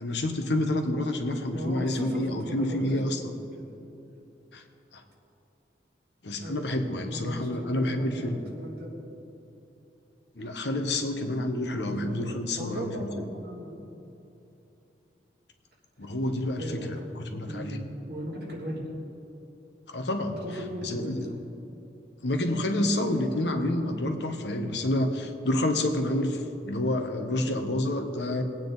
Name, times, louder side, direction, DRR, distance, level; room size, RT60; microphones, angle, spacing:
voice 1, 0.0-3.3 4.5-4.6 4.9-5.0 6.2-8.4 10.4-13.1 16.0-17.8 19.9-20.4 20.8-21.3 22.2-28.4, left 1 dB, 75° left, 5 dB, 1.2 m, -28 dB
voice 2, 1.5-3.0 3.5-3.7 6.4-9.1 11.8-13.9 16.0-16.1 16.6-18.8 20.4-21.4 27.3-27.6, equal, 60° right, -6 dB, 3.1 m, -38 dB
21.5 x 9.0 x 4.0 m, 2.8 s
head